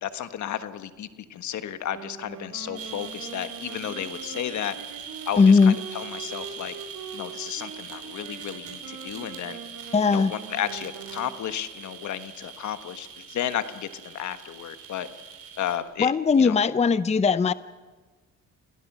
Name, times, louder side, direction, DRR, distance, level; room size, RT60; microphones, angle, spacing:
voice 1, 0.0-4.8 5.3-6.7 7.1-9.6 10.1-15.1 15.6-16.1 16.4-16.6, left 10 dB, 70° left, 11 dB, 1.5 m, -33 dB
Wind instrument woodwind instrument, 1.9-11.4, right 6 dB, 80° right, 3.4 m, -43 dB
sound 1, 2.7-15.8, right 7 dB, 50° right, 5.0 m, -42 dB
voice 2, 5.4-5.7 9.9-10.3 16.0-17.5, left 5 dB, 20° left, 16 dB, 0.6 m, -19 dB
28.5 x 17.5 x 6.1 m, 1.3 s
cardioid pair, 90°, 30 cm